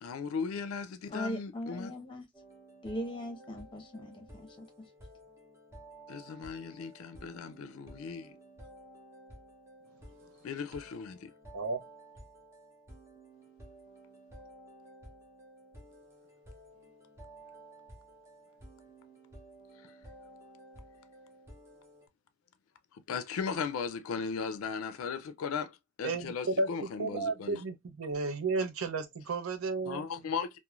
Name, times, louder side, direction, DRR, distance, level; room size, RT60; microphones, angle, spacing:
voice 1, 0.0-1.9 6.1-8.3 10.4-11.3 23.1-27.6 29.9-30.6, left 5 dB, 85° left, 0.4 m, -37 dB
voice 2, 1.1-2.3 2.8-4.9, equal, 25° left, 0.8 m, -39 dB
sound 1, 2.3-22.1, right 1 dB, 15° right, 0.6 m, -53 dB
voice 3, 26.0-30.1, right 3 dB, 85° right, 0.6 m, -33 dB
3.0 x 2.1 x 2.2 m
head